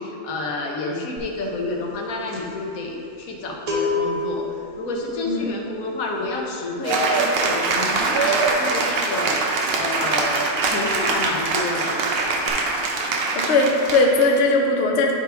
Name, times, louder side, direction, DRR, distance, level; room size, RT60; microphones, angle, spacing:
voice 1, 0.0-4.5 4.8-12.5, left 2 dB, 75° left, 0 dB, 1.3 m, -29 dB
sound 1, 1.2-1.4 1.7-10.3 10.5-10.8 11.0-11.9 12.1-12.5, left 3 dB, 85° right, 1.5 m, -31 dB
Cheering / Applause, 6.8-14.4, right 3 dB, 55° right, 0.7 m, -23 dB
voice 2, 13.3-15.1, left 2 dB, 60° left, 1 dB, 0.8 m, -19 dB
9.4 x 3.5 x 4.4 m, 2.6 s
omnidirectional pair, 1.5 m